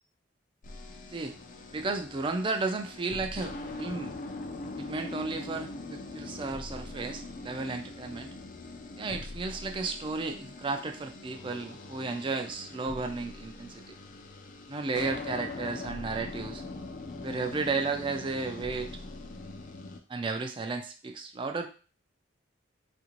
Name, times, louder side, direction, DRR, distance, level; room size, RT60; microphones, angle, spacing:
sound 1, 0.6-20.0, left 2 dB, 40° left, 0.4 m, -42 dB
voice 1, 1.7-4.1 4.8-8.3 9.0-13.8 14.7-16.6 17.2-18.9 20.1-21.7, right 3 dB, 25° right, 6 dB, 0.3 m, -33 dB
3.3 x 2.5 x 3.0 m, 0.37 s
head